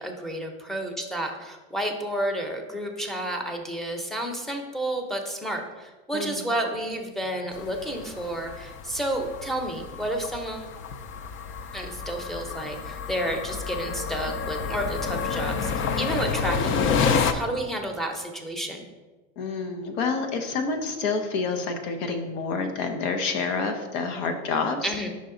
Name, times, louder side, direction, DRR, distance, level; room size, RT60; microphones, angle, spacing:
voice 1, 0.0-10.7 11.7-18.8 24.8-25.1, right 1 dB, ahead, 3 dB, 0.7 m, -31 dB
voice 2, 6.1-6.5 19.4-24.9, left 4 dB, 85° left, 6 dB, 1.0 m, -28 dB
sound 1, 7.5-17.3, left 6 dB, 35° left, 0.4 m, -29 dB
5.6 x 5.2 x 3.8 m, 1.2 s
supercardioid pair, 120°, 37 cm